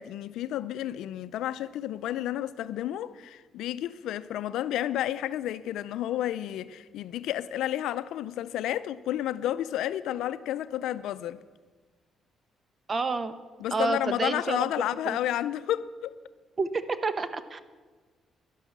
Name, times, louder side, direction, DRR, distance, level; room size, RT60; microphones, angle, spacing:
voice 1, 0.0-11.4 13.6-16.1, left 12 dB, 85° left, 0.4 m, -31 dB
voice 2, 12.9-13.3 13.7-14.7 15.1-15.2 16.6-17.6, right 3 dB, 35° right, 1.0 m, -29 dB
11.5 x 11.0 x 7.3 m
cardioid pair, 90°, 0 cm